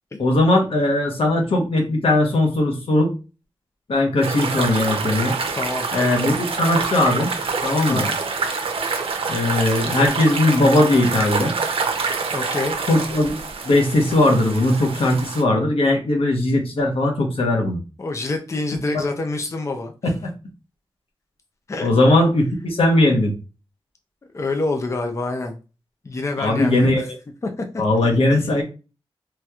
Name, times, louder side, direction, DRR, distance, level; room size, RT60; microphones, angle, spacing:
voice 1, 0.2-3.1 3.9-5.4 5.9-7.3 7.6-8.1 9.3-11.5 12.9-13.3 13.6-17.8 18.9-19.0 20.2-20.3 21.8-23.3 26.4-27.1 27.8-28.6, left 2 dB, 85° left, 2 dB, 0.9 m, -19 dB
sound 1, 4.2-15.4, right 4 dB, 80° right, 0.5 m, -26 dB
voice 2, 5.6-5.9 7.9-8.2 12.3-12.8 18.0-20.1 21.7-21.9 24.3-25.6 26.0-27.1 27.6-27.7 28.3-28.5, left 2 dB, 30° left, 4 dB, 0.4 m, -27 dB
3.1 x 2.9 x 2.3 m, 0.32 s
wide cardioid pair, 115°, 9 cm